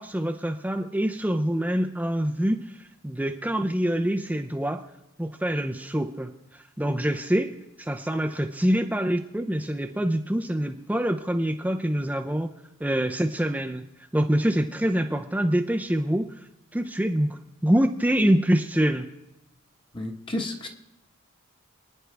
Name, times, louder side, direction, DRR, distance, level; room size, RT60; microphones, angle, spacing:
voice 1, 0.0-2.7 3.0-4.8 5.2-7.5 7.8-12.5 12.8-13.8 14.1-16.3 16.7-19.1, equal, 5° right, 3 dB, 0.6 m, -25 dB
voice 2, 19.9-20.7, left 1 dB, 25° left, 2 dB, 1.3 m, -31 dB
28.0 x 9.8 x 3.4 m, 0.90 s
head